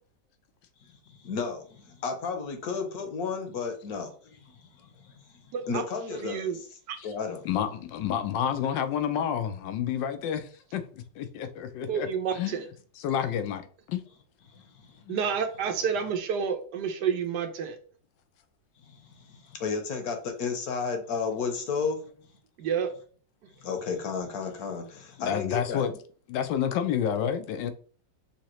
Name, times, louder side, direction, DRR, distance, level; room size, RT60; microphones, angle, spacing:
voice 1, 1.1-4.1 4.4-6.7 7.0-7.4 14.5-15.0 18.9-22.0 23.6-25.8, left 5 dB, 65° left, 1.2 m, -33 dB
voice 2, 6.2-6.6 6.9-7.0 11.9-12.6 15.1-17.8 22.6-22.9, right 7 dB, 75° right, 1.2 m, -29 dB
voice 3, 7.4-12.1 12.3-12.6 13.0-13.6 13.9-14.0 15.1-15.2 25.2-26.0 26.3-27.7, left 9 dB, 85° left, 1.3 m, -29 dB
5.9 x 2.8 x 3.0 m
omnidirectional pair, 1.9 m